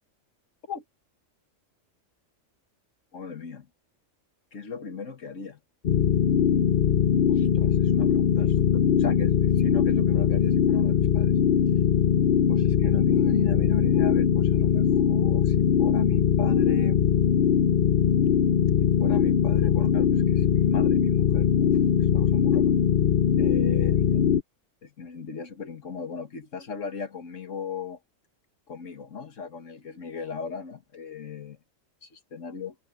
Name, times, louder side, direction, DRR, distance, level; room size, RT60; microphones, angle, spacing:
voice 1, 3.1-3.7 4.5-5.6 7.3-11.3 12.5-17.0 18.8-22.7 23.4-24.3 24.8-28.0 28.7-31.6 32.0-32.8, left 6 dB, 70° left, 2.0 m, -37 dB
sound 1, 5.8-24.4, left 8 dB, 50° left, 0.8 m, -21 dB
omnidirectional pair, 1.3 m